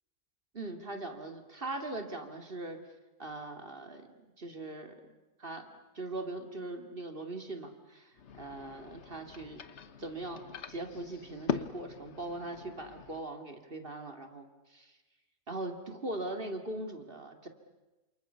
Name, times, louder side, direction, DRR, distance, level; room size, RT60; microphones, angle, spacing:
voice 1, 0.5-2.8 3.2-4.1 4.4-5.0 5.4-5.7 5.9-9.6 10.0-10.4 10.7-14.9 15.5-17.5, right 2 dB, 40° right, 6 dB, 2.6 m, -40 dB
sound 1, 8.1-13.2, left 6 dB, 50° left, 1.3 m, -41 dB
29.0 x 27.5 x 6.9 m, 1.1 s
omnidirectional pair, 1.5 m